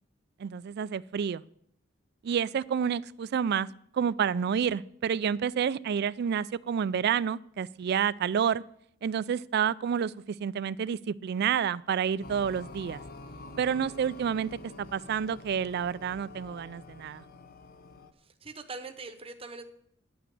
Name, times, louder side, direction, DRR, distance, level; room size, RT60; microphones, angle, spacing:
voice 1, 0.4-1.4 2.2-3.7 3.9-8.6 9.0-13.0 13.6-14.5 14.8-17.2, right 7 dB, 55° right, 20 dB, 0.3 m, -29 dB
sound 1, 12.2-18.1, left 2 dB, 50° left, 0.8 m, -47 dB
voice 2, 18.2-19.6, right 3 dB, 30° right, 8 dB, 0.8 m, -42 dB
10.5 x 6.0 x 8.5 m, 0.70 s
head